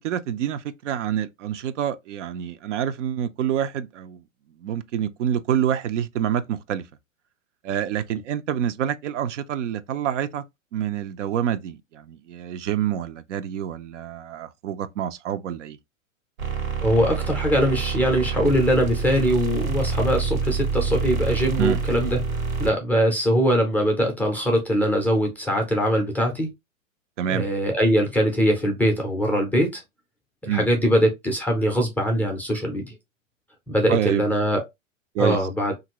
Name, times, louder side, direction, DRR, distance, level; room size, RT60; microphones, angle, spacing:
voice 1, 0.0-4.2 4.6-6.8 7.6-10.4 10.7-15.8 21.6-21.8 27.2-27.5 30.5-30.7 33.9-34.2 35.1-35.4, right 9 dB, 65° right, 0.5 m, -27 dB
sound 1, 16.4-22.7, right 5 dB, 85° right, 1.4 m, -26 dB
voice 2, 16.8-22.2 22.6-26.5 27.3-29.8 30.4-32.8 33.7-34.6 35.2-35.7, equal, 5° left, 0.5 m, -22 dB
2.8 x 2.6 x 2.9 m
hypercardioid pair, 120°, 40 cm